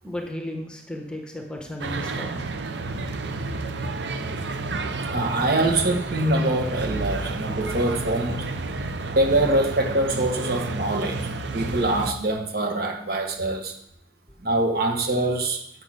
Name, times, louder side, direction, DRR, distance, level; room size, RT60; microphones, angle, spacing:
voice 1, 0.0-2.4, left 1 dB, 5° left, 2 dB, 1.1 m, -34 dB
sound 1, 1.8-12.1, right 3 dB, 85° right, 0.7 m, -30 dB
voice 2, 5.1-8.5 9.0-13.8 14.4-15.6, right 2 dB, 60° right, 2 dB, 1.4 m, -24 dB
6.7 x 6.4 x 6.3 m, 0.73 s
head